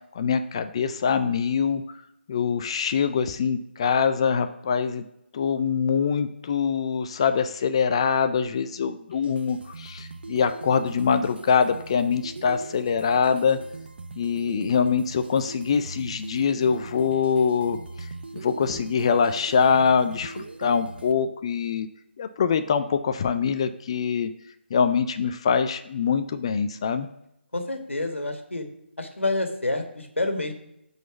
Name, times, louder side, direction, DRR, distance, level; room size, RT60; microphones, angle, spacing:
voice 1, 0.2-1.8 2.3-5.0 5.3-13.6 14.1-18.1 18.3-21.9 22.2-24.3 24.7-27.1, left 6 dB, 25° left, 10 dB, 0.3 m, -24 dB
sound 1, 9.1-21.1, right 3 dB, 55° right, 0.8 m, -40 dB
voice 2, 27.5-28.6 29.0-30.5, left 2 dB, 85° left, 5 dB, 1.5 m, -28 dB
9.2 x 4.0 x 5.8 m, 0.80 s
figure-of-eight pair, 155°, 6 cm